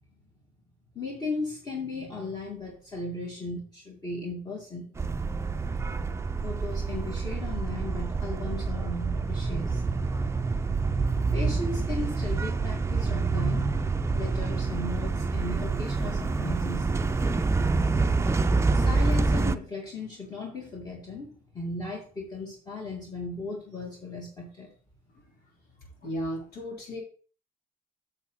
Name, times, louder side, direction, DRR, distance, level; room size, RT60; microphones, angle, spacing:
voice 1, 0.9-4.9 6.4-9.8 11.3-13.7 14.1-16.9 18.7-24.7, left 2 dB, 25° left, -2 dB, 2.5 m, -36 dB
sound 1, 5.0-19.6, right 3 dB, 15° right, 0.5 m, -27 dB
voice 2, 26.0-27.0, equal, 70° left, -1 dB, 3.5 m, -34 dB
8.2 x 6.9 x 3.9 m, 0.39 s
cardioid pair, 110°, 17 cm